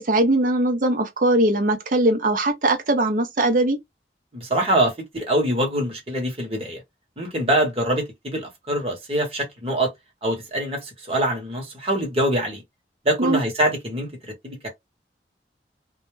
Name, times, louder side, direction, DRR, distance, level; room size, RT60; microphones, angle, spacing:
voice 1, 0.0-3.8 13.2-13.4, right 1 dB, 50° right, 0.6 m, -20 dB
voice 2, 4.3-6.8 7.2-9.9 10.2-12.6 13.0-14.7, right 1 dB, 35° right, 1.0 m, -24 dB
2.2 x 2.1 x 3.1 m
head